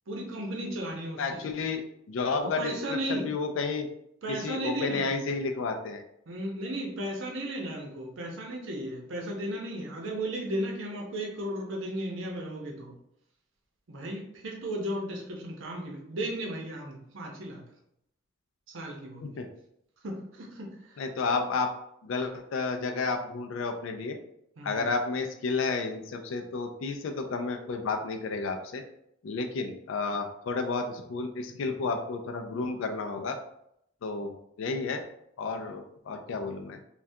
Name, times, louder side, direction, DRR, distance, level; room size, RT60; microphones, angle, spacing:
voice 1, 0.1-1.4 2.4-3.3 4.2-5.2 6.3-12.9 13.9-17.6 18.7-19.3 20.0-21.0 21.3-21.4 24.6-24.8, right 1 dB, 70° right, 0 dB, 0.7 m, -35 dB
voice 2, 1.2-1.8 2.1-3.9 4.3-6.0 19.2-19.5 21.0-21.7 22.0-24.2 24.6-28.8 29.2-33.4 34.0-35.0 35.4-36.8, left 4 dB, 70° left, 5 dB, 0.4 m, -31 dB
3.4 x 2.2 x 2.7 m, 0.75 s
head